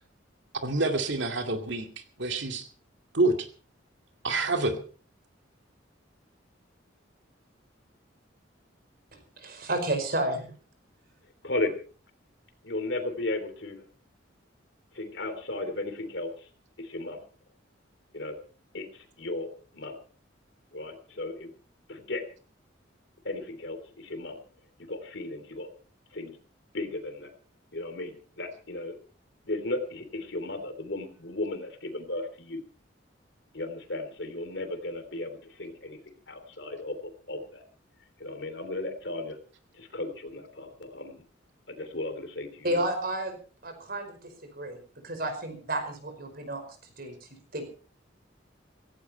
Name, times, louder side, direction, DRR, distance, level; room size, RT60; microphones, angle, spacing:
voice 1, 0.6-1.9 2.2-2.6 3.1-3.5 4.2-4.8, right 2 dB, 65° right, 6 dB, 2.4 m, -27 dB
voice 2, 9.1-10.5 42.6-43.4 43.6-44.8 45.0-46.6 47.0-47.2 47.5-47.6, right 1 dB, 50° right, 7 dB, 5.2 m, -31 dB
voice 3, 12.6-13.8 14.9-16.5 16.8-17.2 18.1-18.4 18.7-19.5 19.7-19.9 20.7-21.5 21.9-22.2 23.2-24.4 24.8-25.7 26.1-26.4 26.7-27.3 27.7-29.0 29.4-32.6 33.5-37.6 38.2-39.4 39.7-41.2 41.7-42.8, left 2 dB, 60° left, 9 dB, 3.2 m, -35 dB
17.0 x 16.5 x 4.4 m, 0.39 s
head